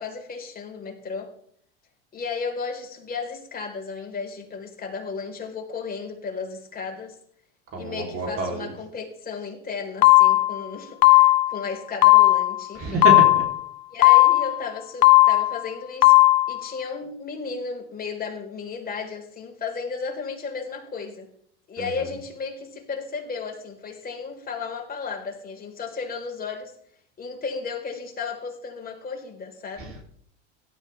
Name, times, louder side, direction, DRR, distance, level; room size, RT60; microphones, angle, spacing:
voice 1, 0.0-1.3 2.1-7.2 7.8-13.1 13.9-16.2 16.5-21.3 21.7-26.7 27.2-30.0, left 5 dB, 25° left, 2 dB, 4.1 m, -34 dB
voice 2, 7.7-8.7 12.8-13.4 21.8-21.9 29.8-30.0, right 3 dB, 35° right, 1 dB, 3.5 m, -27 dB
sound 1, 10.0-10.6 11.0-11.6 12.0-12.6 13.0-13.6 14.0-14.6 15.0-15.6 16.0-16.6, left 19 dB, 55° left, 0.9 m, -15 dB
17.0 x 13.0 x 3.4 m, 0.64 s
hypercardioid pair, 105°, 36 cm